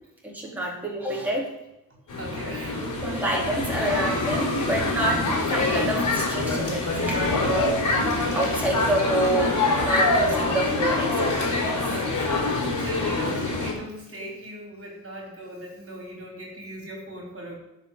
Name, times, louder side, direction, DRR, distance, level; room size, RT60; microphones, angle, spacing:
voice 1, 0.2-1.5 2.8-5.2 5.5-7.8 8.3-11.8, right 1 dB, 5° right, -4 dB, 4.3 m, -28 dB
sound 1, 2.1-13.7, left 2 dB, 50° left, 4.6 m, -25 dB
voice 2, 2.2-3.2 3.8-3.9 11.9-17.6, right 1 dB, 35° right, -1 dB, 4.4 m, -38 dB
10.0 x 6.7 x 9.0 m, 0.91 s
supercardioid pair, 70°, 40 cm